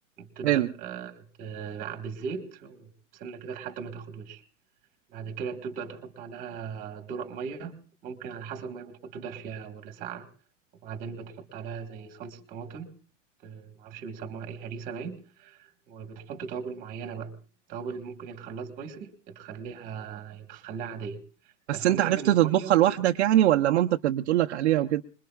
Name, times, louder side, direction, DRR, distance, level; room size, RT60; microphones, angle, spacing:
voice 1, 0.2-4.4 5.1-10.3 10.8-12.9 13.4-17.4 17.7-21.2 21.7-22.7, right 6 dB, 20° right, 1.5 m, -38 dB
voice 2, 21.7-25.0, right 13 dB, 55° right, 0.7 m, -22 dB
26.0 x 21.5 x 2.3 m
supercardioid pair, 170°, 39 cm